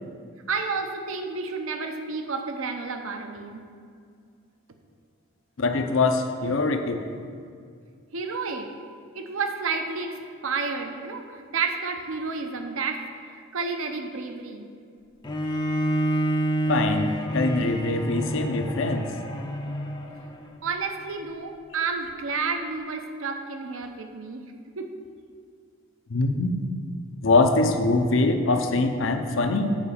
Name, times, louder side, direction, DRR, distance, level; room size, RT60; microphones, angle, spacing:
voice 1, 0.5-3.7 8.1-8.7 9.1-14.7 20.6-24.4 24.8-25.0, right 4 dB, 70° right, 5 dB, 0.7 m, -31 dB
voice 2, 5.6-7.0 16.7-19.1 26.1-26.5 27.2-29.8, left 3 dB, 60° left, 6 dB, 0.6 m, -23 dB
Bowed string instrument, 15.2-20.5, right 1 dB, 20° left, 0.5 m, -28 dB
7.3 x 4.9 x 6.9 m, 2.3 s
head